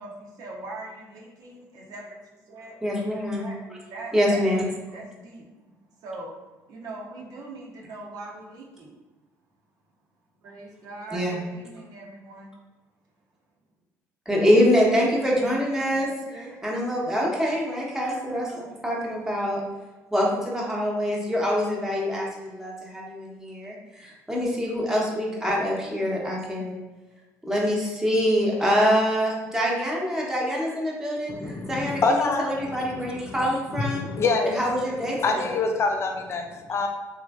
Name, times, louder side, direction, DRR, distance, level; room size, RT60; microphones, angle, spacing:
voice 1, 0.0-2.2 2.5-2.8 3.4-4.5 4.9-5.5 6.0-6.3 6.7-8.9 10.4-12.5 15.3-15.4 15.9-16.6, right 2 dB, 60° right, -2 dB, 0.6 m, -41 dB
voice 2, 2.8-3.5 4.1-4.6 11.1-11.4 14.3-16.1 16.3-19.6 20.1-26.7 27.5-34.1 34.4-35.6, equal, 5° right, -4 dB, 0.8 m, -25 dB
voice 3, 31.3-34.5 35.2-36.9, left 3 dB, 40° left, 4 dB, 0.4 m, -26 dB
3.0 x 2.5 x 2.3 m, 1.2 s
supercardioid pair, 75°, 7 cm